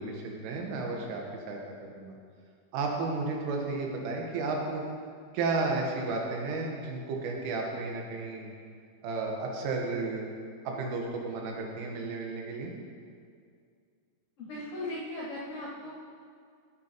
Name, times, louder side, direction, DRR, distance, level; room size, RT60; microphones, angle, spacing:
voice 1, 0.0-2.1 2.7-4.8 5.3-8.5 9.0-10.3 10.7-12.7, right 3 dB, 90° right, 0 dB, 3.8 m, -33 dB
voice 2, 14.4-15.9, left 1 dB, 65° left, -7 dB, 2.1 m, -38 dB
15.0 x 8.2 x 2.9 m, 2.2 s
omnidirectional pair, 5.6 m